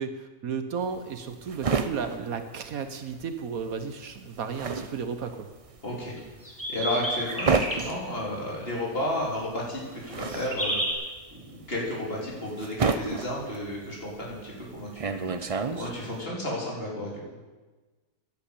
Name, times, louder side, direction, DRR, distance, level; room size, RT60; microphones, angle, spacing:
voice 1, 0.0-5.5, right 6 dB, 70° right, 8 dB, 1.4 m, -33 dB
sound 1, 0.8-3.3 3.6-16.2, right 4 dB, 40° right, 0.4 m, -31 dB
voice 2, 5.8-6.1 6.7-11.0 11.3-17.2, left 1 dB, 40° left, -4 dB, 4.1 m, -33 dB
sound 2, 6.2-7.9 10.1-10.9, equal, 10° left, 2.4 m, -30 dB
11.0 x 11.0 x 8.5 m, 1.3 s
omnidirectional pair, 1.6 m